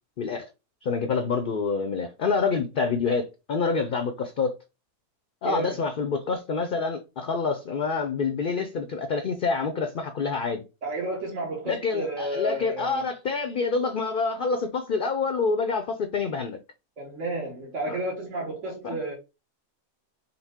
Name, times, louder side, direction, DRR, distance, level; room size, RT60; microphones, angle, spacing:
voice 1, 0.2-0.5 0.8-4.6 5.4-10.6 11.6-16.6 17.9-18.0 18.8-19.0, left 4 dB, 50° left, 0.6 m, -27 dB
voice 2, 5.4-5.8 10.8-13.1 17.0-19.1, right 1 dB, 65° right, 1.6 m, -31 dB
5.9 x 2.1 x 3.6 m
omnidirectional pair, 1.4 m